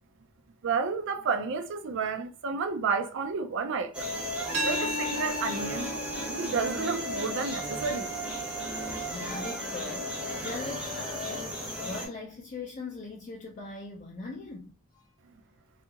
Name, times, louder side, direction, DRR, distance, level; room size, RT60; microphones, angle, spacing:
voice 1, 0.6-4.1 4.6-5.9 6.3-8.1, right 5 dB, 60° right, 0.4 m, -31 dB
sound 1, 3.9-12.1, equal, 5° right, 0.7 m, -34 dB
sound 2, 4.5-10.3, right 1 dB, 85° right, 0.9 m, -38 dB
voice 2, 9.0-15.1, left 3 dB, 35° left, 0.4 m, -40 dB
2.7 x 2.4 x 2.7 m
head